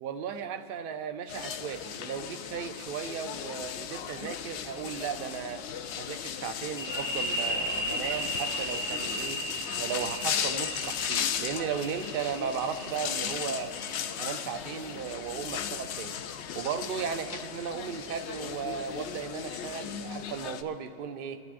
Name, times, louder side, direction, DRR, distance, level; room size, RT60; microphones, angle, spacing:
voice 1, 0.0-5.6 6.0-9.4 9.8-13.7 14.2-16.2 16.5-21.4, right 7 dB, 75° right, 7 dB, 0.5 m, -36 dB
sound 1, 1.3-20.6, left 8 dB, 70° left, 0.6 m, -36 dB
sound 2, 6.8-14.2, equal, 10° right, 4.0 m, -35 dB
28.5 x 12.0 x 2.5 m, 2.8 s
omnidirectional pair, 1.7 m